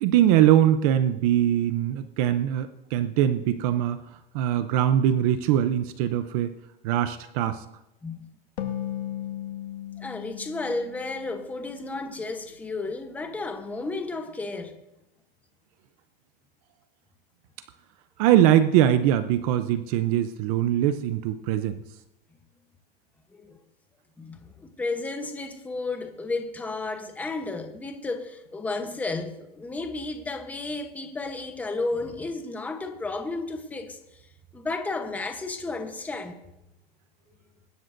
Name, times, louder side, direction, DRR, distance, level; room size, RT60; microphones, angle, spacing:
voice 1, 0.0-6.5 6.8-7.7 18.2-21.8, right 11 dB, 40° right, 0.6 m, -22 dB
sound 1, 8.6-12.1, left 11 dB, 90° left, 1.8 m, -36 dB
voice 2, 10.0-14.8 23.3-23.6 24.2-34.2 34.5-36.4, left 3 dB, 5° left, 0.9 m, -33 dB
22.5 x 12.5 x 2.6 m
supercardioid pair, 150°, 30 cm